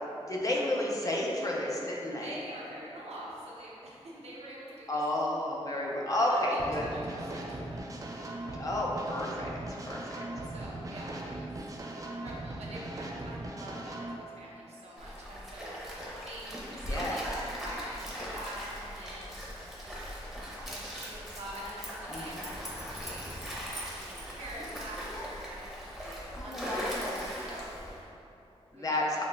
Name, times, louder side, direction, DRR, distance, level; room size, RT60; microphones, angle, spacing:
voice 1, 0.3-2.3 4.9-6.8 8.6-9.5 9.9-10.0 16.9-17.2 22.1-22.4 26.3-27.2 28.7-29.0, left 1 dB, 35° left, -3 dB, 0.5 m, -31 dB
voice 2, 2.2-5.0 6.3-7.8 10.4-11.6 12.0-19.5 19.8-20.1 20.6-23.4 23.6-27.9 28.7-29.0, right 1 dB, 80° right, -5 dB, 0.7 m, -46 dB
sound 1, 6.6-14.2, right 1 dB, 30° right, 0.3 m, -39 dB
Stream, 15.0-28.0, equal, ahead, 0.8 m, -39 dB
6.2 x 2.1 x 2.2 m, 2.8 s
wide cardioid pair, 85°, 11 cm